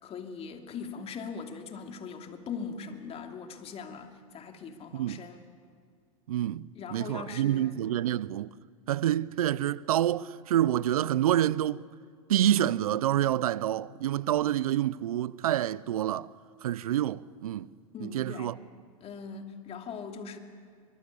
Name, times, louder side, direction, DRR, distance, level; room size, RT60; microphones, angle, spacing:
voice 1, 0.0-5.4 6.7-7.7 17.9-18.5 19.0-20.4, left 5 dB, 35° left, 2.7 m, -40 dB
voice 2, 6.3-8.5 8.9-11.8 12.3-16.3 16.6-17.7 18.0-18.5, right 12 dB, 80° right, 0.6 m, -27 dB
24.0 x 23.5 x 8.4 m
hypercardioid pair, 100°, 18 cm